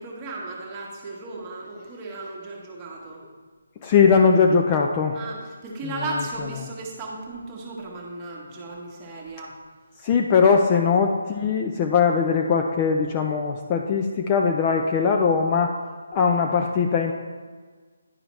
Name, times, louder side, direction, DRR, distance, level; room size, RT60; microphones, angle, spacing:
voice 1, 0.0-3.2 5.1-9.5 10.7-10.8, right 2 dB, 20° right, -2 dB, 1.1 m, -35 dB
voice 2, 3.8-5.2 5.8-6.0 10.0-15.7 16.1-17.1, left 5 dB, 20° left, 2 dB, 0.3 m, -20 dB
10.0 x 4.8 x 3.1 m, 1.5 s
hypercardioid pair, 165°, 0 cm